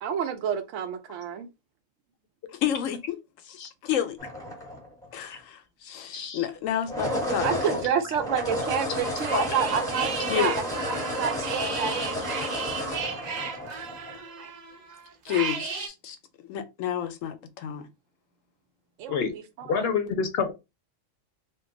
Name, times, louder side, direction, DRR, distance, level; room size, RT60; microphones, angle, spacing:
voice 1, 0.0-1.5 7.4-12.5 19.0-19.4 19.7-19.9, right 7 dB, 75° right, 0.9 m, -29 dB
voice 2, 2.6-3.2 3.5-3.6 3.8-4.2 5.1-7.9 10.3-10.5 15.2-16.2 16.5-17.8, left 10 dB, 90° left, 1.0 m, -30 dB
sound 1, 4.2-5.2 6.7-14.2, equal, 5° left, 0.8 m, -32 dB
sound 2, 9.0-15.9, right 5 dB, 50° right, 0.5 m, -35 dB
voice 3, 19.7-20.5, left 6 dB, 60° left, 0.8 m, -27 dB
2.7 x 2.3 x 3.7 m
omnidirectional pair, 1.3 m